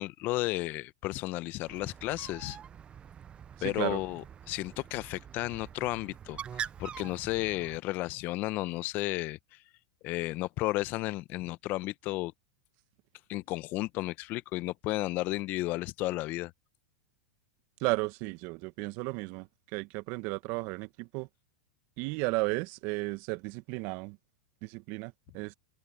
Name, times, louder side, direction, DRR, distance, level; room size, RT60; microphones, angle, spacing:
voice 1, 0.0-2.6 3.6-9.4 10.0-12.3 13.3-16.5, left 19 dB, 45° left, 1.0 m, -33 dB
Bird, 1.7-7.8, right 8 dB, 25° right, 0.7 m, -44 dB
voice 2, 3.6-4.0 17.8-21.3 22.0-24.2 24.6-25.5, right 25 dB, 50° right, 1.7 m, -34 dB
hypercardioid pair, 110°, 4 cm